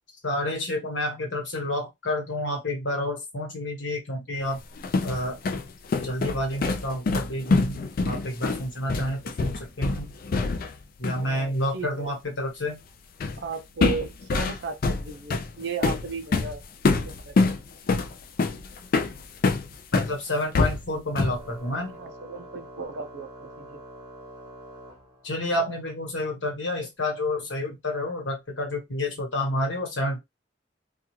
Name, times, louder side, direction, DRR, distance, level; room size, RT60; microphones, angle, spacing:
voice 1, 0.2-4.6 5.0-5.4 5.9-9.5 9.8-10.1 11.0-12.8 19.9-21.9 25.2-30.2, left 1 dB, 80° left, 1.2 m, -29 dB
sound 1, 4.6-10.8 11.0-11.3 13.2-13.5 13.8-20.1 20.5-21.5, left 3 dB, 50° left, 0.4 m, -25 dB
voice 2, 11.2-12.1 13.4-16.6 17.0-17.5 21.9-23.8, right 4 dB, 65° right, 0.5 m, -35 dB
Organ, 21.1-25.6, right 1 dB, 20° right, 1.0 m, -45 dB
2.4 x 2.3 x 3.0 m
head